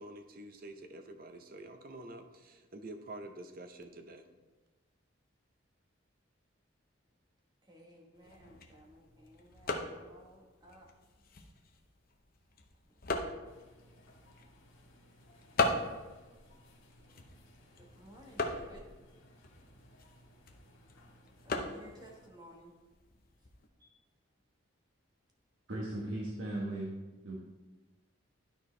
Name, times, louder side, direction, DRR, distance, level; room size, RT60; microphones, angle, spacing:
voice 1, 0.0-4.2, right 1 dB, 45° right, 7 dB, 0.7 m, -48 dB
voice 2, 7.6-10.9 12.9-13.0 17.8-18.9 21.4-22.8 23.4-23.5 23.8-24.0, equal, 20° right, -1 dB, 1.2 m, -57 dB
sound 1, 8.1-23.7, left 2 dB, 45° left, 0.8 m, -40 dB
sound 2, 13.4-22.3, equal, 85° left, 1.7 m, -61 dB
voice 3, 25.7-26.9 27.2-27.4, right 1 dB, 75° right, -4 dB, 1.2 m, -37 dB
12.0 x 4.5 x 3.3 m, 1.2 s
head